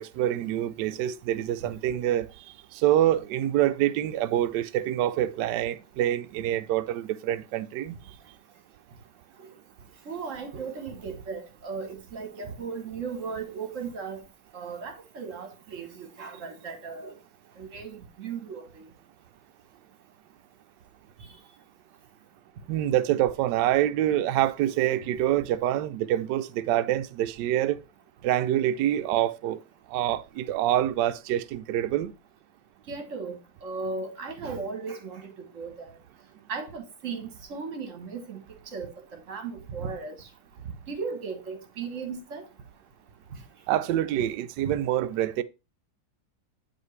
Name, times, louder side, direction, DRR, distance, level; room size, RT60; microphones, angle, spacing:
voice 1, 0.0-8.0 22.7-27.8 28.2-29.6 29.9-32.1 43.7-45.4, right 12 dB, 75° right, 1.0 m, -26 dB
voice 2, 10.0-14.2 14.5-17.2 17.6-18.9 32.9-36.0 36.5-38.4 38.7-40.3 40.9-42.4 44.6-44.7, right 5 dB, 45° right, 1.2 m, -36 dB
8.2 x 5.2 x 3.1 m
omnidirectional pair, 2.3 m